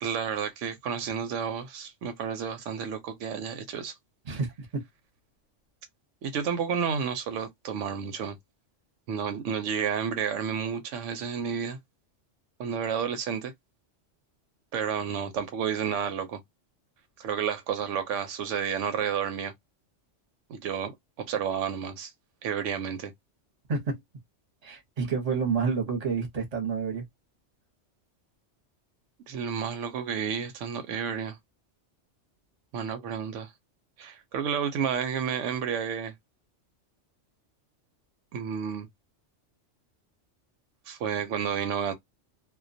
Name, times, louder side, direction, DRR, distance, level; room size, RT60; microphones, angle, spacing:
voice 1, 0.0-3.9 6.2-8.4 9.1-11.8 12.6-13.5 14.7-16.4 17.2-19.5 20.5-20.9 21.2-22.1 22.4-23.1 29.3-31.4 32.7-33.5 34.0-36.1 38.3-38.9 40.9-41.9, right 7 dB, 85° right, 0.9 m, -31 dB
voice 2, 4.3-4.8 23.7-24.0 24.6-27.1, right 5 dB, 35° right, 0.8 m, -29 dB
2.2 x 2.2 x 2.5 m
omnidirectional pair, 1.2 m